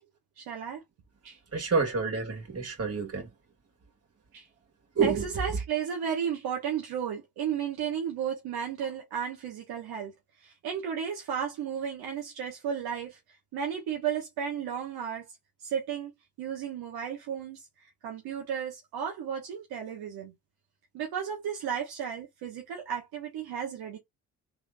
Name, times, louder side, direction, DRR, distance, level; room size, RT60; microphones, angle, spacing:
voice 1, 0.4-0.8 1.2-1.4 4.3-4.4 5.0-10.1 10.4-13.2 13.5-15.2 15.6-16.1 16.4-17.6 18.0-20.3 20.9-24.0, right 8 dB, 80° right, 1.2 m, -33 dB
voice 2, 1.5-3.3 5.0-5.3, right 5 dB, 40° right, 2.1 m, -28 dB
3.7 x 3.4 x 2.5 m
supercardioid pair, 45°, 37 cm